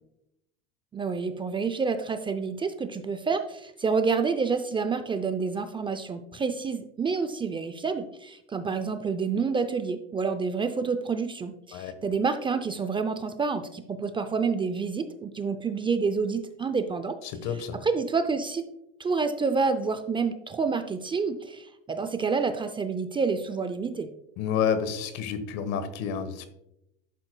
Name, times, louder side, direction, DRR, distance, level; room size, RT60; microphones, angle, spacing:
voice 1, 0.9-17.2 17.8-18.7 19.0-24.1, right 5 dB, 15° right, 9 dB, 0.4 m, -28 dB
voice 2, 17.2-17.8 24.4-26.5, left 7 dB, 65° left, 11 dB, 1.3 m, -29 dB
11.0 x 7.8 x 2.2 m, 0.83 s
supercardioid pair, 120°, 30 cm